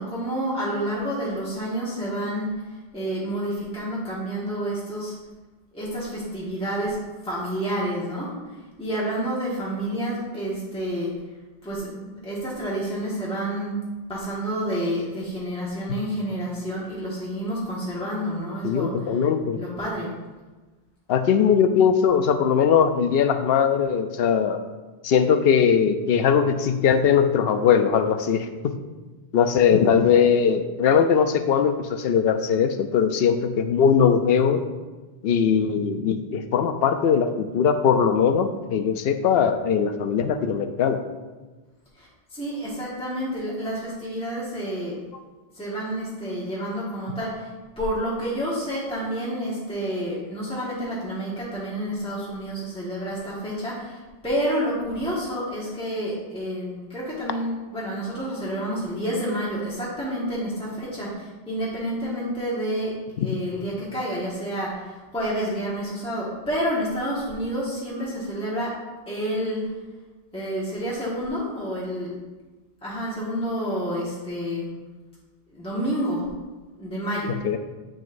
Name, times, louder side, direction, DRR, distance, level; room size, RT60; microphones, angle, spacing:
voice 1, 0.0-2.5 2.9-5.1 5.7-8.3 8.8-11.1 11.6-13.8 14.1-19.1 19.6-20.1 41.9-44.9 45.5-47.5 47.8-62.9 63.2-68.8 69.1-69.7 70.3-72.1 72.8-74.7 75.5-76.3 76.8-77.4, equal, 5° left, -7 dB, 1.5 m, -29 dB
voice 2, 18.6-19.6 21.1-24.6 25.0-28.7 29.3-34.6 35.2-41.0 63.2-63.3 77.4-77.6, left 7 dB, 75° left, 9 dB, 0.8 m, -20 dB
8.7 x 6.3 x 2.6 m, 1.2 s
omnidirectional pair, 1.0 m